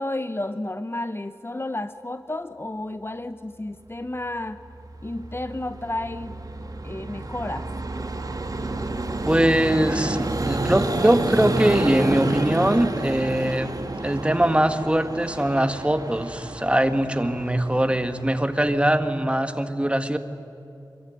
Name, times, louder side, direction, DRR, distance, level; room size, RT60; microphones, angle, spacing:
voice 1, 0.0-4.6 5.0-6.4 6.8-7.7, left 2 dB, 30° left, 10 dB, 0.9 m, -31 dB
Vehicle, 4.7-19.3, right 2 dB, 50° right, 2.5 m, -30 dB
voice 2, 9.2-13.7 14.0-20.2, right 1 dB, 15° right, 8 dB, 1.7 m, -22 dB
26.0 x 23.0 x 9.9 m, 2.6 s
wide cardioid pair, 70°, 8 cm